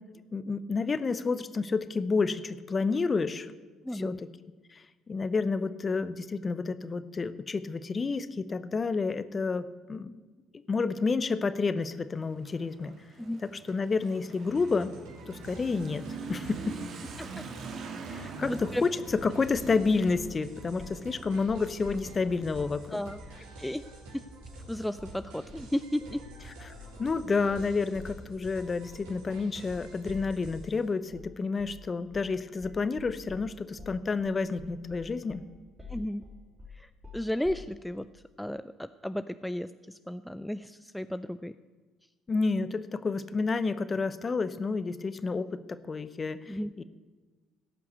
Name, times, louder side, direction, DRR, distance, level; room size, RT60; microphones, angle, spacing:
voice 1, 0.3-3.5 3.9-4.1 4.7-10.2 10.7-12.9 13.7-14.9 15.3-16.0 16.3-16.8 18.1-18.9 19.2-23.0 27.0-35.4 42.3-46.8, left 4 dB, 30° left, 14 dB, 0.7 m, -30 dB
voice 2, 3.8-4.2 13.2-13.4 17.2-17.5 18.4-18.8 22.9-23.2 23.6-23.8 24.1-24.2 24.7-26.2 35.9-36.3 36.7-41.5 46.5-46.7, left 1 dB, 5° left, 12 dB, 0.4 m, -34 dB
Motorcycle / Accelerating revving vroom, 11.6-24.0, right 4 dB, 55° right, 1.5 m, -44 dB
sound 1, 14.5-30.8, right 1 dB, 80° right, 3.1 m, -49 dB
sound 2, 19.4-20.4 20.8-21.1 21.4-22.8 23.2-23.4 23.8-24.0 24.4-24.6 25.0-25.2 25.5-30.7 31.1-31.3 31.6-31.9 32.1-32.4 32.6-37.8, left 3 dB, 20° right, 3.6 m, -48 dB
16.0 x 5.9 x 8.1 m, 1.3 s
supercardioid pair, 70°, 0 cm